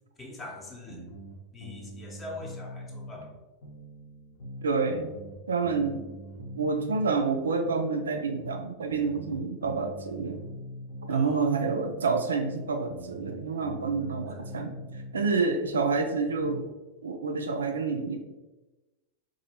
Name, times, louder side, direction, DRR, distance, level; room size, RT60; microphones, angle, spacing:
voice 1, 0.2-1.1 1.5-3.3 11.1-11.7 14.3-14.4, left 2 dB, 20° left, 1 dB, 0.8 m, -43 dB
sound 1, 0.9-3.3 3.6-7.3 7.6-11.3 11.6-15.3 15.6-16.7, right 1 dB, 55° left, 0.8 m, -44 dB
voice 2, 4.6-5.1 5.5-6.1 6.3-10.4 11.1-16.7 17.0-18.2, right 4 dB, 70° right, 5 dB, 0.4 m, -28 dB
4.0 x 2.6 x 2.8 m, 1.1 s
figure-of-eight pair, 90°, 0 cm